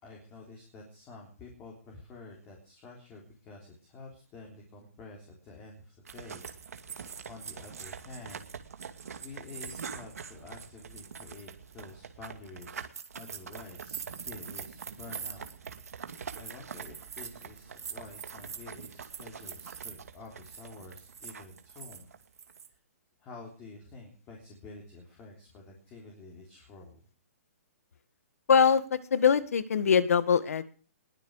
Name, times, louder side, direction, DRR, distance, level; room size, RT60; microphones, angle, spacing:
voice 1, 0.0-6.8 7.3-8.4 9.2-12.9 13.1-15.5 15.8-22.1 22.7-22.8 23.2-27.0, left 3 dB, 15° left, 0 dB, 3.5 m, -49 dB
sound 1, 6.1-22.7, right 6 dB, 85° right, 2.4 m, -43 dB
voice 2, 28.5-30.6, left 6 dB, 75° left, 14 dB, 1.9 m, -23 dB
21.0 x 7.6 x 6.5 m, 0.39 s
hypercardioid pair, 175°, 8 cm